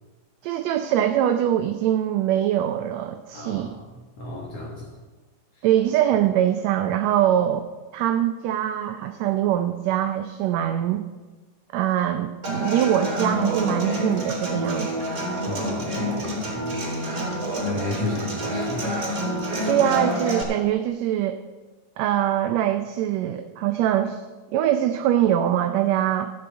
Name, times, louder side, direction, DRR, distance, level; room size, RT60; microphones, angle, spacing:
voice 1, 0.4-3.8 5.6-7.7 7.9-11.0 11.7-14.9 19.7-21.4 22.0-24.2 24.5-26.3, right 11 dB, 75° right, 7 dB, 1.8 m, -23 dB
voice 2, 3.3-3.9 4.2-5.0 15.5-16.8 17.6-19.0, left 1 dB, 60° left, -2 dB, 2.5 m, -33 dB
Human voice / Acoustic guitar, 12.4-20.4, equal, 40° right, 3.8 m, -27 dB
13.5 x 6.8 x 7.9 m, 1.3 s
omnidirectional pair, 3.4 m